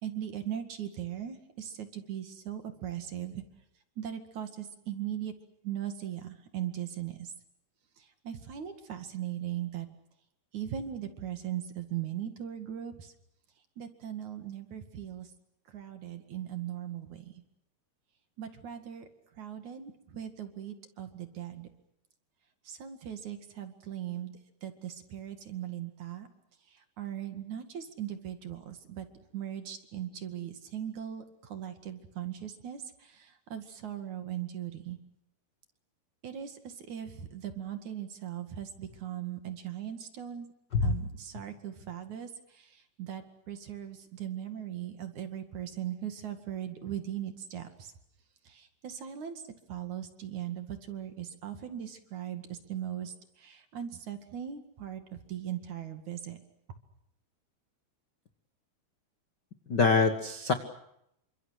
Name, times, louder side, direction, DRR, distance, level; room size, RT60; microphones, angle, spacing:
voice 1, 0.0-3.4 4.0-5.3 5.6-7.3 8.2-9.9 10.5-13.1 13.8-15.3 15.7-17.2 18.4-19.0 19.4-21.7 22.7-24.3 24.6-26.3 27.0-29.1 29.3-35.0 36.2-40.5 40.8-42.3 42.5-42.7 43.0-47.9 48.5-49.3 49.7-53.1 53.4-55.0 55.3-56.4, right 10 dB, 55° right, 7 dB, 3.2 m, -39 dB
voice 2, 59.7-60.5, left 4 dB, 60° left, 7 dB, 1.1 m, -24 dB
28.5 x 26.0 x 6.5 m, 0.77 s
omnidirectional pair, 4.5 m